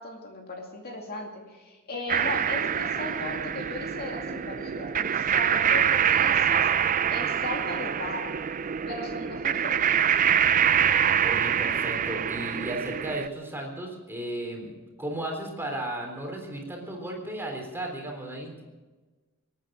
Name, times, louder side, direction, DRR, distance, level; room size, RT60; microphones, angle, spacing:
voice 1, 0.0-6.7 7.1-8.3 8.9-9.9, left 1 dB, 45° left, 1 dB, 2.5 m, -37 dB
sound 1, 2.1-13.3, right 8 dB, 35° right, 0.4 m, -25 dB
voice 2, 11.2-14.7 15.0-18.6, right 1 dB, 10° right, 1 dB, 3.6 m, -35 dB
26.0 x 9.1 x 6.2 m, 1.3 s
head